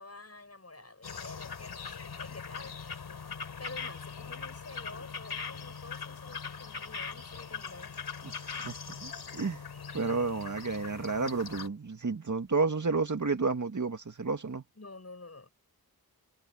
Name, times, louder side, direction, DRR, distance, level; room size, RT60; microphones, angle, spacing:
voice 1, 0.0-2.8 3.6-7.9 14.8-15.5, left 3 dB, 40° left, 6.4 m, -49 dB
sound 1, 1.0-11.7, left 6 dB, 85° left, 4.3 m, -41 dB
voice 2, 8.2-9.6 9.9-14.6, right 4 dB, 50° right, 2.3 m, -31 dB
cardioid pair, 50°, 37 cm